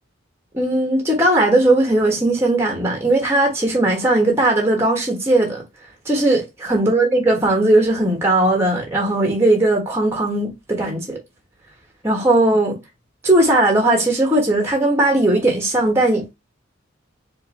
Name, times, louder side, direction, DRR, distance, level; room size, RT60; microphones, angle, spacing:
voice 1, 0.5-5.6 6.0-11.2 12.0-12.8 13.2-16.3, right 2 dB, 15° right, 1.2 m, -18 dB
4.6 x 2.7 x 4.0 m
head